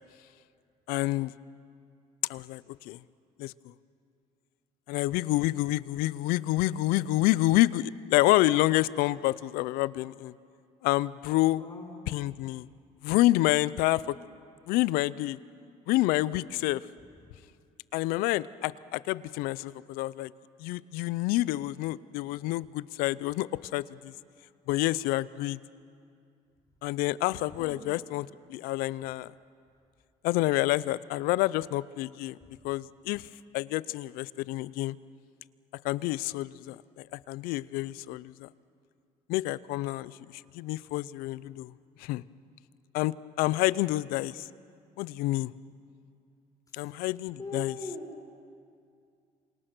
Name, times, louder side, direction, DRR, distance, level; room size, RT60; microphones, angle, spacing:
voice 1, 0.9-1.3 2.3-3.0 3.4-3.5 4.9-10.3 10.8-11.6 12.1-12.7 13.0-14.2 14.7-15.4 15.9-16.8 17.9-20.3 20.6-23.5 23.7-24.1 24.7-25.6 26.8-29.3 30.2-32.4 32.6-33.2 33.5-35.0 35.8-38.5 39.3-40.1 40.5-41.7 42.0-42.2 42.9-44.5 45.0-45.5 46.7-47.7, left 17 dB, 85° left, 19 dB, 0.6 m, -28 dB
voice 2, 11.6-12.0 27.6-27.9 32.5-32.6 46.7-46.8 47.4-48.2, left 3 dB, 25° left, -2 dB, 6.2 m, -40 dB
27.5 x 25.0 x 6.1 m, 2.4 s
supercardioid pair, 90°, 15 cm